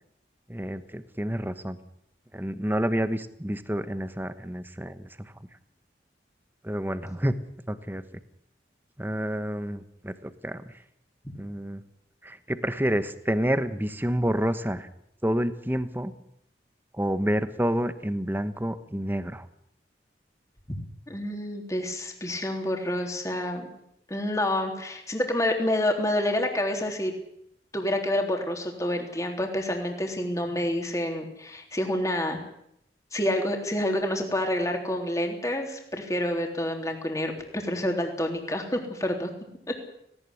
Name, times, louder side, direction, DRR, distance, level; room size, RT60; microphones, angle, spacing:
voice 1, 0.5-1.8 2.3-5.3 6.6-7.4 7.7-8.0 9.0-10.7 11.4-11.8 12.2-14.9 15.2-16.1 16.9-19.5, equal, 10° right, 11 dB, 1.2 m, -29 dB
voice 2, 21.1-23.7 24.1-27.1 27.7-32.4 33.1-39.3 39.7-39.8, left 1 dB, 20° left, 3 dB, 3.6 m, -28 dB
18.5 x 18.0 x 9.9 m, 0.74 s
head